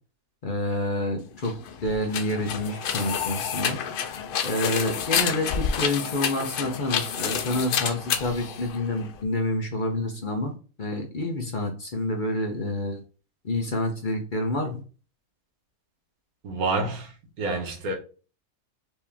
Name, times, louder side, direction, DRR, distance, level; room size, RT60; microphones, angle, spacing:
voice 1, 0.4-1.5 1.8-3.8 4.4-13.0 13.4-14.8, left 1 dB, 45° left, 0.8 m, -28 dB
sound 1, 1.4-9.2, left 7 dB, 70° left, 0.5 m, -29 dB
voice 2, 16.4-17.9, right 3 dB, 90° right, 1.5 m, -28 dB
4.6 x 2.9 x 3.4 m
omnidirectional pair, 1.5 m